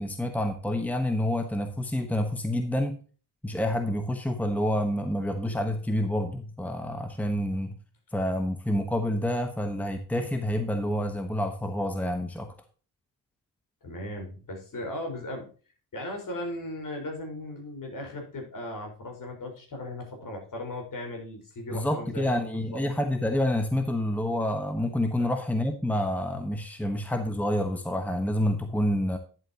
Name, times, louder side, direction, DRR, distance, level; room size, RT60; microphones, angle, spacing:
voice 1, 0.0-3.0 3.4-7.8 8.1-12.5 21.7-29.2, left 1 dB, 5° left, 6 dB, 1.1 m, -28 dB
voice 2, 13.8-15.5 15.9-22.8 25.2-25.3 26.3-26.4 26.8-26.9, left 1 dB, 55° left, 2 dB, 4.8 m, -37 dB
10.5 x 8.0 x 2.9 m, 0.37 s
cardioid pair, 105°, 38 cm